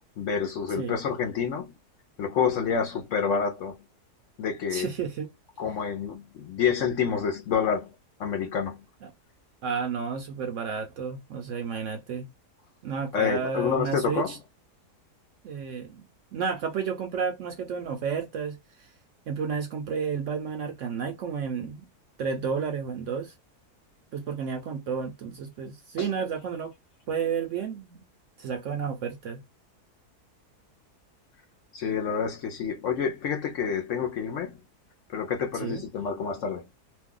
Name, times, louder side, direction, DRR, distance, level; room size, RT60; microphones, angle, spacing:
voice 1, 0.2-1.7 2.2-3.8 4.4-4.9 5.6-7.9 8.2-8.8 13.1-14.4 26.0-26.1 31.7-34.6 35.1-36.6, left 6 dB, 70° left, 0.8 m, -28 dB
voice 2, 4.7-5.3 9.6-12.3 12.8-14.4 15.4-16.1 16.3-18.9 19.3-21.9 22.2-23.3 24.1-26.7 27.1-28.0 28.4-29.4 35.5-35.8, right 6 dB, 65° right, 0.8 m, -31 dB
2.6 x 2.2 x 3.6 m
omnidirectional pair, 1.7 m